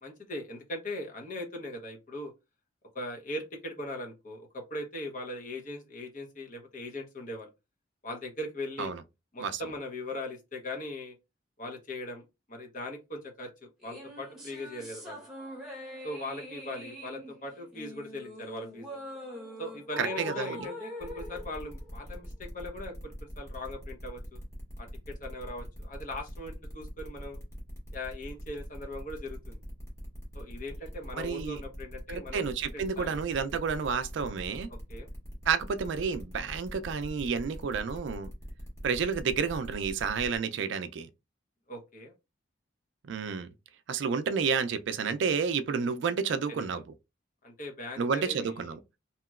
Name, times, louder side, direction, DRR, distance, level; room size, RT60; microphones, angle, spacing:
voice 1, 0.0-2.3 2.9-7.5 8.0-8.9 9.3-11.2 11.6-15.2 16.0-18.9 19.6-24.4 24.8-27.4 27.9-29.6 30.3-32.4 32.7-33.2 34.9-35.1 41.7-42.1 46.5-46.7 47.4-48.6, left 1 dB, 45° left, 0.9 m, -40 dB
sound 1, 13.8-22.4, left 1 dB, ahead, 1.0 m, -43 dB
voice 2, 20.0-20.6 31.2-31.6 32.1-34.7 35.5-38.3 38.8-41.1 43.0-43.5 43.9-46.8 48.0-48.8, right 6 dB, 70° right, 0.4 m, -30 dB
sound 2, 21.0-40.4, equal, 15° left, 1.3 m, -44 dB
2.9 x 2.9 x 2.3 m
head